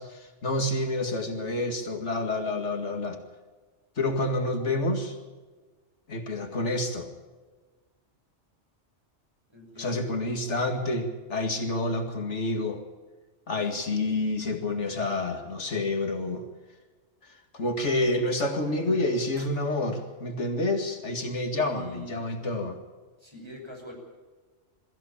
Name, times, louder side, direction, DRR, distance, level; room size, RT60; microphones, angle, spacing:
voice 1, 0.0-3.2 4.0-5.2 6.1-7.1 9.8-12.8 13.5-16.4 17.2-22.8, left 2 dB, 70° left, 5 dB, 2.4 m, -28 dB
voice 2, 9.5-10.1 18.1-18.2 18.6-19.1 19.4-19.5 21.6-22.2 23.2-23.9, equal, 20° right, 0 dB, 6.1 m, -44 dB
23.0 x 14.5 x 8.6 m, 1.3 s
omnidirectional pair, 1.2 m